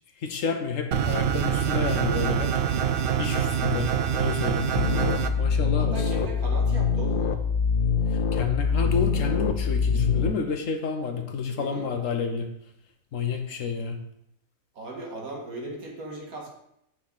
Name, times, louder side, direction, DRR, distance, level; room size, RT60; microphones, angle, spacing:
voice 1, 0.2-2.6 3.2-4.7 5.4-6.0 8.1-12.5 13.1-14.0, left 5 dB, 65° left, 5 dB, 1.2 m, -30 dB
sound 1, 0.9-5.3, right 8 dB, 60° right, 0.5 m, -25 dB
sound 2, 4.7-10.3, left 5 dB, 85° left, 0.4 m, -24 dB
voice 2, 5.8-7.4 11.5-11.9 14.8-16.5, right 2 dB, 80° right, -1 dB, 2.2 m, -37 dB
8.6 x 5.8 x 4.0 m, 0.79 s
omnidirectional pair, 1.5 m